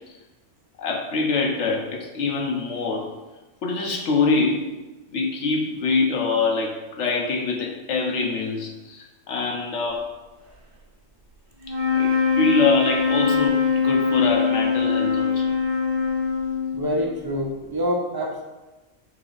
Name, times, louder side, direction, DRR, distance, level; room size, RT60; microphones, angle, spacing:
voice 1, 0.8-3.1 3.6-4.6 5.1-10.1 11.9-12.1 12.4-15.5, left 4 dB, 80° left, 0 dB, 1.1 m, -24 dB
sound 1, 11.6-17.1, left 5 dB, 55° right, 1.4 m, -22 dB
voice 2, 16.7-18.4, equal, 40° right, -1 dB, 0.3 m, -26 dB
6.0 x 2.0 x 3.9 m, 1.1 s
omnidirectional pair, 1.2 m